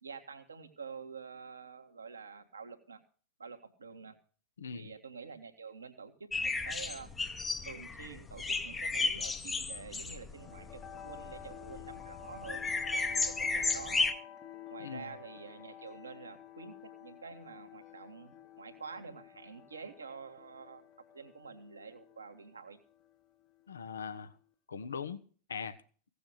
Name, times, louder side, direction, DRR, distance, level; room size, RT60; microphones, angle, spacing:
voice 1, 0.0-3.0 3.4-4.2 4.7-7.1 7.6-14.0 14.7-20.8 21.1-22.8, right 5 dB, 75° right, 1.7 m, -48 dB
voice 2, 4.6-4.9 14.8-15.2 23.7-24.3 24.7-25.2 25.5-25.8, left 6 dB, 70° left, 1.1 m, -40 dB
sound 1, 6.3-14.1, left 3 dB, 15° left, 1.0 m, -34 dB
sound 2, 10.3-24.4, left 10 dB, 35° left, 1.3 m, -51 dB
16.5 x 7.0 x 6.4 m
figure-of-eight pair, 90°, 0 cm